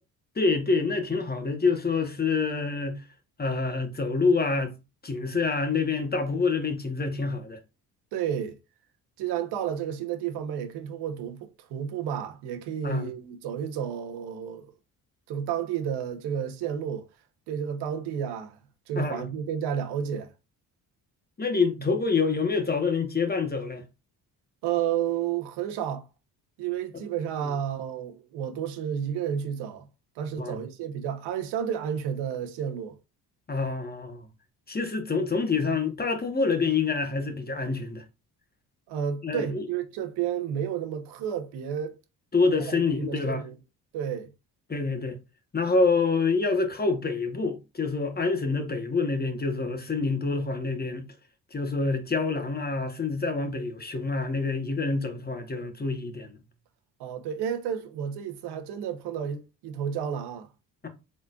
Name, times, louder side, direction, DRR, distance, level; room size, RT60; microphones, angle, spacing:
voice 1, 0.3-3.0 3.4-4.7 5.0-7.6 12.8-13.1 18.9-19.3 21.4-23.8 27.4-27.5 30.4-30.6 33.5-34.3 34.7-38.0 39.2-39.6 42.3-43.4 44.7-45.2 45.5-51.1 51.5-56.4 60.8-60.9, left 4 dB, 25° left, 1.2 m, -27 dB
voice 2, 8.1-8.6 9.2-14.7 15.3-17.1 17.5-18.6 18.9-20.3 24.6-26.1 26.6-29.8 30.2-33.0 38.9-42.0 42.6-43.6 43.9-44.3 57.0-60.5, right 8 dB, 85° right, 1.0 m, -31 dB
4.3 x 3.7 x 2.4 m
supercardioid pair, 70°, 39 cm